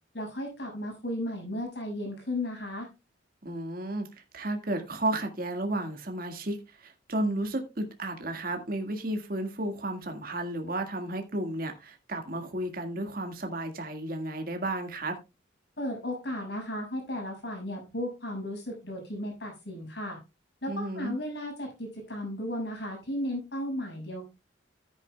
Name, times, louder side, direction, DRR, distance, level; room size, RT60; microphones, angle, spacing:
voice 1, 0.1-2.9 15.8-20.2 20.6-24.3, left 1 dB, 65° left, 6.3 m, -35 dB
voice 2, 3.4-4.1 4.3-15.2 20.7-21.2, right 1 dB, 50° right, 1.8 m, -33 dB
13.5 x 9.7 x 2.2 m
head